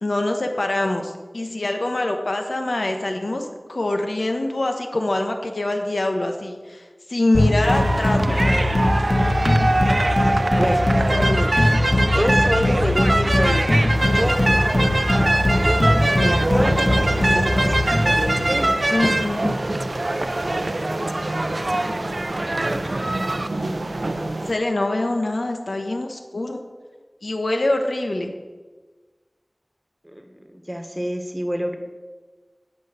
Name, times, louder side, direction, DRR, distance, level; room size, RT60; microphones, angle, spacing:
voice 1, 0.0-8.7 18.9-19.7 21.6-22.0 24.5-26.6 27.2-28.3, left 2 dB, 85° left, 4 dB, 1.1 m, -24 dB
sound 1, 7.3-18.8, left 1 dB, 60° left, 1.5 m, -21 dB
sound 2, 7.6-23.5, right 2 dB, 55° right, 0.5 m, -23 dB
voice 2, 10.5-11.7 12.1-13.7 14.1-14.9 15.5-18.7 30.1-31.8, equal, 10° right, 5 dB, 1.4 m, -27 dB
sound 3, 13.9-24.5, right 2 dB, 90° right, 0.7 m, -28 dB
9.7 x 5.5 x 8.0 m, 1.3 s
wide cardioid pair, 50°, 0 cm